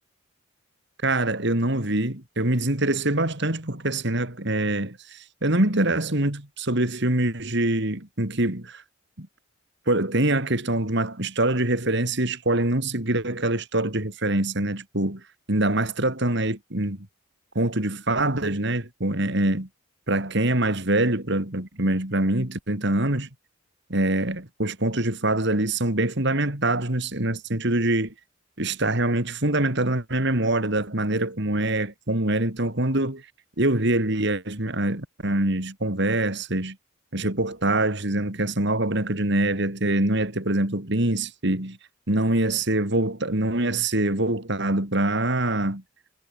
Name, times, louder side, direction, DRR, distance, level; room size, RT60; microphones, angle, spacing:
voice 1, 1.0-8.8 9.2-9.3 9.9-15.2 15.5-17.1 17.5-19.7 20.1-23.3 23.9-28.1 28.6-33.2 33.6-36.8 37.1-41.8 42.1-45.8, right 1 dB, 55° right, 3.2 m, -24 dB
head